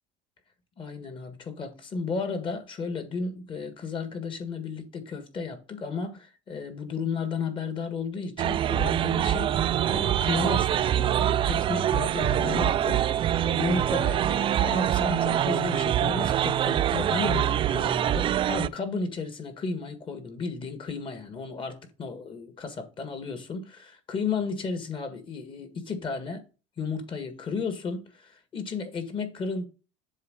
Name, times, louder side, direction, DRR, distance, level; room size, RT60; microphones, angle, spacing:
voice 1, 0.8-26.4 26.8-29.7, left 4 dB, 35° left, 1.6 m, -33 dB
sound 1, 8.4-18.7, right 11 dB, 35° right, 0.3 m, -25 dB
7.4 x 3.6 x 6.4 m
cardioid pair, 130°, 16 cm